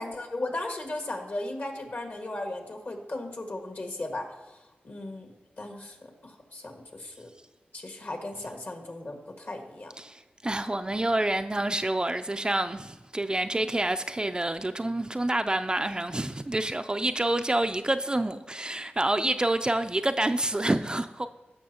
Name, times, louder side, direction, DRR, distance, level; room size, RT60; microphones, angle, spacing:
voice 1, 0.0-7.3 7.7-9.9, left 2 dB, 55° left, 1.8 m, -37 dB
voice 2, 10.0-21.3, right 1 dB, 20° right, 0.4 m, -28 dB
15.5 x 6.1 x 2.9 m
cardioid pair, 55°, 4 cm